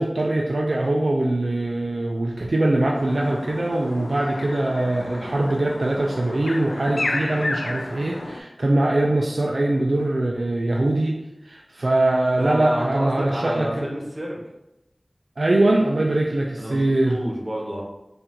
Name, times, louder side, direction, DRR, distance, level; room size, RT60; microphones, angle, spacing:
voice 1, 0.0-11.2 11.5-13.9 15.4-17.2, right 2 dB, 80° right, -1 dB, 0.4 m, -22 dB
sound 1, 2.9-8.4, left 2 dB, 80° left, 0.4 m, -32 dB
voice 2, 12.3-14.4 16.6-17.8, equal, 40° right, -3 dB, 1.2 m, -29 dB
4.3 x 2.5 x 3.8 m, 0.92 s
wide cardioid pair, 50°, 0 cm